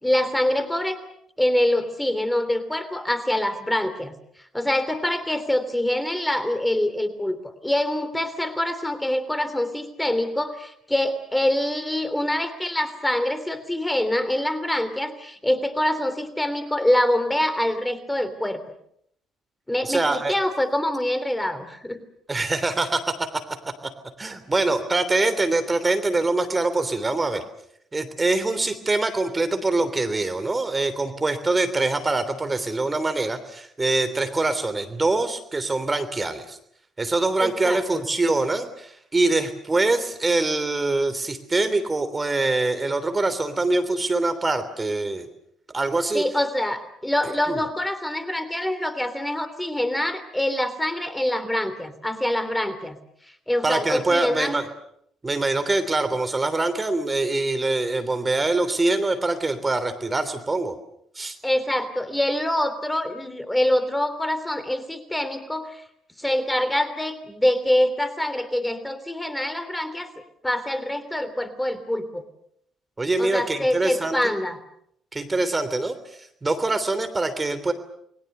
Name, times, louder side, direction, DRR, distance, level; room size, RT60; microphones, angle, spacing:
voice 1, 0.0-1.0 1.4-4.2 4.5-18.6 19.7-22.0 37.4-38.0 46.1-53.0 53.5-54.6 61.4-65.8 66.2-70.1 70.4-72.2 73.2-74.6, left 1 dB, 10° left, 12 dB, 3.1 m, -25 dB
voice 2, 19.8-20.3 22.3-23.4 24.2-27.4 27.9-36.6 37.0-45.3 45.7-46.2 47.5-47.6 53.6-54.7 55.2-60.8 61.1-61.4 73.0-74.2 75.1-77.7, right 2 dB, 25° right, 10 dB, 3.2 m, -24 dB
29.0 x 22.0 x 6.8 m, 0.70 s
hypercardioid pair, 55°, 0 cm